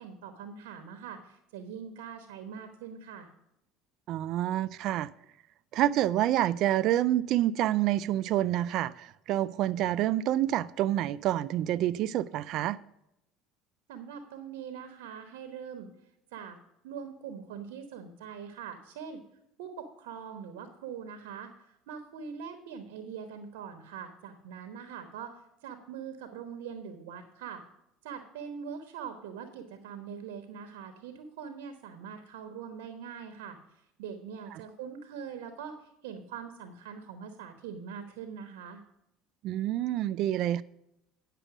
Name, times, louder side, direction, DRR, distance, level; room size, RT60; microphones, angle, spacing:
voice 1, 0.0-3.3 13.9-15.9 16.3-16.6 16.8-19.2 19.6-25.3 25.6-27.6 28.0-33.6 34.0-35.7 36.0-38.8, right 7 dB, 80° right, 1.2 m, -42 dB
voice 2, 4.1-5.1 5.7-12.8 39.4-40.6, right 13 dB, 60° right, 0.4 m, -27 dB
10.0 x 6.8 x 6.0 m
hypercardioid pair, 80°, 0 cm